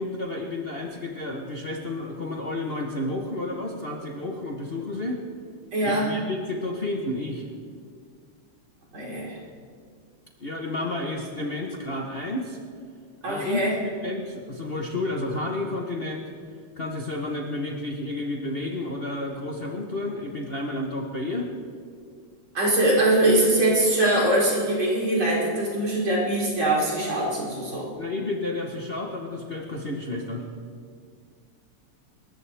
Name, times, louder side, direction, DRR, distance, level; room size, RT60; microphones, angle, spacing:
voice 1, 0.0-5.2 5.8-7.4 10.4-12.6 13.2-16.3 16.8-21.5 28.0-30.5, left 2 dB, 35° left, 0 dB, 1.1 m, -31 dB
voice 2, 5.7-6.1 8.9-9.4 13.2-13.8 22.5-27.9, right 1 dB, 70° right, -5 dB, 5.1 m, -22 dB
27.5 x 14.5 x 3.4 m, 2.1 s
omnidirectional pair, 2.3 m